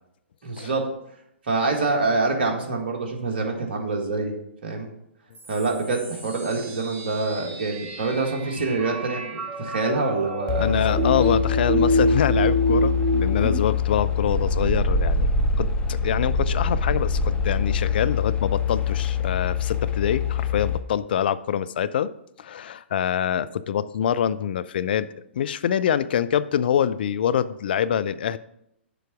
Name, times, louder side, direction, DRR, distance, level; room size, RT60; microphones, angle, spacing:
voice 1, 0.4-0.8 1.4-4.3 4.6-4.9 5.5-11.2, right 3 dB, 55° right, 2 dB, 1.6 m, -26 dB
sound 1, 5.3-13.5, right 1 dB, 25° right, 2.2 m, -27 dB
sound 2, 10.5-20.8, left 5 dB, 15° left, 0.7 m, -24 dB
voice 2, 10.6-15.3 15.6-22.1 22.4-25.1 25.3-28.4, left 9 dB, 50° left, 15 dB, 0.4 m, -25 dB
6.9 x 4.5 x 6.1 m, 0.78 s
figure-of-eight pair, 115°, 7 cm